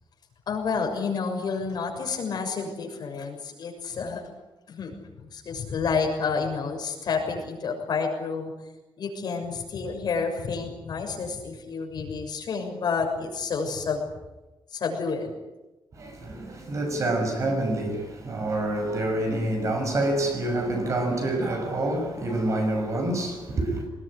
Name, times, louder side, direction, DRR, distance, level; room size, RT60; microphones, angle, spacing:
voice 1, 0.5-4.2 4.7-4.9 5.3-8.5 9.0-14.0 14.7-15.3, left 5 dB, 55° left, 6.7 m, -29 dB
voice 2, 15.9-23.8, right 1 dB, 40° right, 6.4 m, -27 dB
24.0 x 20.5 x 9.8 m
wide cardioid pair, 170°, 8 cm